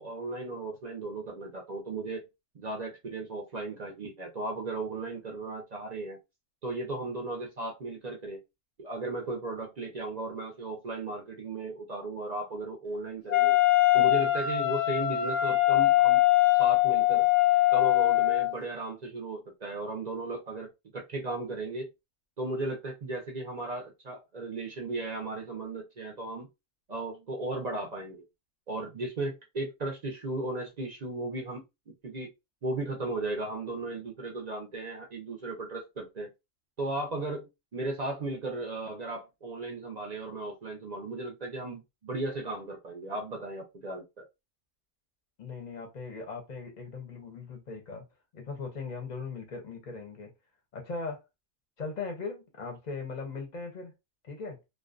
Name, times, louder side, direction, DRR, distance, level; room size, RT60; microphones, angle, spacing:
voice 1, 0.0-2.3 2.5-6.2 6.6-8.4 8.8-13.6 13.9-16.2 16.6-17.3 17.7-20.7 20.9-21.9 22.4-26.5 26.9-28.2 28.7-32.3 32.6-36.3 36.8-44.3, right 2 dB, 50° right, 0.5 m, -36 dB
Wind instrument woodwind instrument, 13.3-18.5, left 16 dB, 80° left, 0.9 m, -22 dB
voice 2, 45.4-48.0 48.3-50.3 50.7-51.2 51.8-53.9 54.2-54.6, left 4 dB, 45° left, 0.7 m, -39 dB
2.5 x 2.1 x 2.4 m
omnidirectional pair, 1.3 m